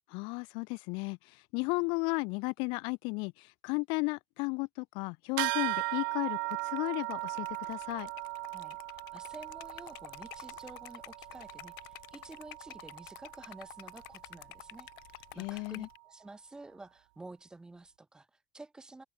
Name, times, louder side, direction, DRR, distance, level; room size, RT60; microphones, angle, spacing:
voice 1, 0.1-8.1 15.4-15.9, left 30 dB, 50° left, 0.5 m, -34 dB
sound 1, 5.4-15.2, right 24 dB, 80° right, 0.8 m, -39 dB
Liquid, 6.4-16.0, left 25 dB, 75° left, 1.4 m, -51 dB
voice 2, 9.1-19.0, right 2 dB, 5° right, 0.7 m, -51 dB
open air
cardioid pair, 180°, 11 cm